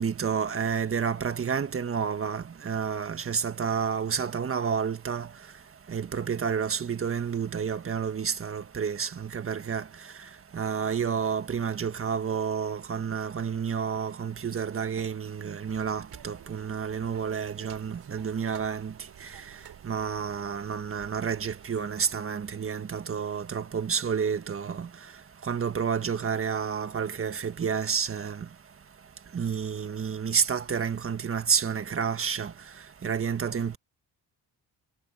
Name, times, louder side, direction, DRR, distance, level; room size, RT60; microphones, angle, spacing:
voice 1, 0.0-5.3 5.9-9.8 10.5-18.9 19.8-24.9 25.5-28.4 29.3-32.5 33.0-33.8, right 6 dB, 35° right, 1.6 m, -30 dB
sound 1, 15.7-22.1, right 11 dB, 75° right, 7.3 m, -51 dB
cardioid pair, 115°, 38 cm